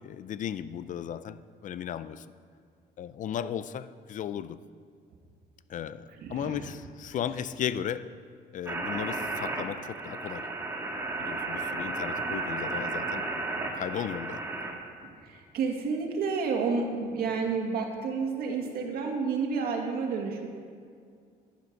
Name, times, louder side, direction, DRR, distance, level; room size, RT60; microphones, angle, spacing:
voice 1, 0.0-2.3 3.0-4.6 5.7-8.1 8.5-10.5 11.2-13.3 13.7-14.4, left 9 dB, 50° left, 14 dB, 0.5 m, -35 dB
voice 2, 6.2-6.6 15.0-20.5, right 5 dB, 65° right, 2 dB, 2.0 m, -30 dB
sound 1, 8.7-14.7, right 3 dB, 15° right, 1.7 m, -33 dB
10.5 x 10.5 x 5.3 m, 2.2 s
cardioid pair, 110°, 17 cm